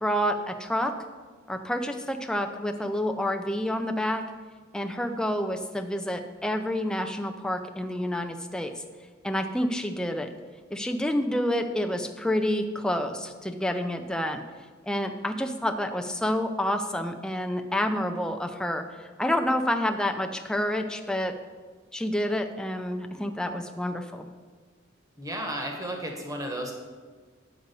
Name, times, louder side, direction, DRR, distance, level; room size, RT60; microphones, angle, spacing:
voice 1, 0.0-0.9 1.5-4.3 4.7-8.7 9.2-10.3 10.7-14.4 14.8-21.4 21.9-24.3, left 1 dB, 5° left, 5 dB, 0.5 m, -28 dB
voice 2, 25.2-26.7, right 1 dB, 15° right, 1 dB, 1.2 m, -33 dB
8.0 x 4.9 x 6.8 m, 1.5 s
head